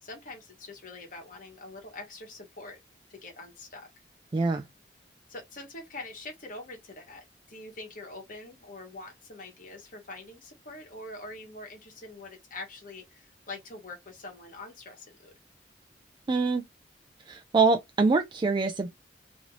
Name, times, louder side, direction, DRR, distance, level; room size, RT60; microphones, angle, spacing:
voice 1, 0.0-2.8 3.1-3.9 5.3-15.3, left 2 dB, 50° left, 1.3 m, -44 dB
voice 2, 4.3-4.6 16.3-16.6 17.3-18.9, right 4 dB, 25° right, 0.3 m, -24 dB
3.0 x 2.6 x 3.0 m
head